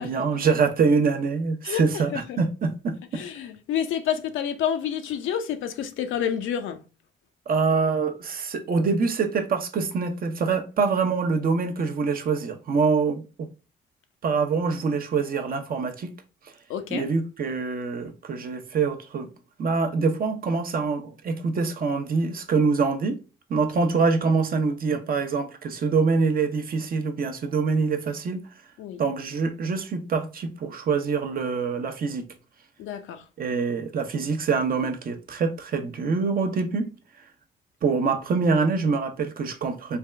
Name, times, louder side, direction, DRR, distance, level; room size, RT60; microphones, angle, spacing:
voice 1, 0.0-3.2 7.5-13.5 14.2-16.1 16.9-19.3 19.6-23.2 23.5-28.5 29.0-32.2 33.4-36.9 37.8-40.0, right 4 dB, 45° right, 0.7 m, -25 dB
voice 2, 1.6-2.4 3.1-6.8 16.7-17.1 28.8-29.0 32.8-33.2, left 9 dB, 80° left, 0.6 m, -29 dB
3.4 x 2.3 x 3.2 m
cardioid pair, 90°, 20 cm